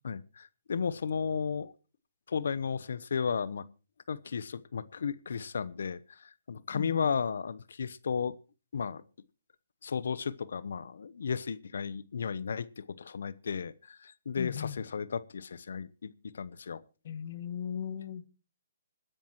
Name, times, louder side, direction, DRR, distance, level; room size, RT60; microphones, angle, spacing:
voice 1, 0.0-1.7 2.3-3.6 4.1-8.3 8.7-9.0 9.8-16.8, left 6 dB, 65° left, 17 dB, 0.8 m, -34 dB
voice 2, 6.7-7.1 14.4-14.8 17.0-18.3, left 8 dB, 50° left, 14 dB, 1.2 m, -37 dB
26.0 x 10.0 x 3.0 m, 0.34 s
hypercardioid pair, 140°, 0 cm